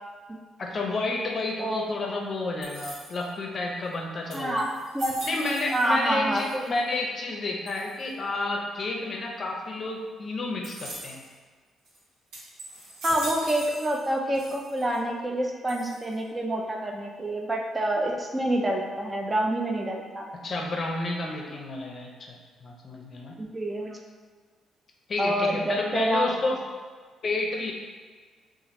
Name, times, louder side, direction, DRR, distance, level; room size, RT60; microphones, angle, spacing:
voice 1, 0.6-4.7 5.2-11.2 20.3-22.3 22.6-23.4 25.1-26.6 27.2-27.7, left 2 dB, 45° left, 0 dB, 0.6 m, -30 dB
sound 1, 2.6-3.4 3.9-4.0 4.3-6.0 6.3-6.9 7.7-8.1 10.6-11.3 11.8-12.0 12.3-14.1 14.3-15.0 15.7-16.2, right 1 dB, 90° right, 1.2 m, -41 dB
voice 2, 4.3-5.2 5.7-6.6 13.0-20.3 23.4-24.0 25.2-26.3, right 1 dB, 20° right, 1 dB, 0.4 m, -27 dB
2.9 x 2.4 x 4.1 m, 1.6 s
cardioid pair, 90°, 0 cm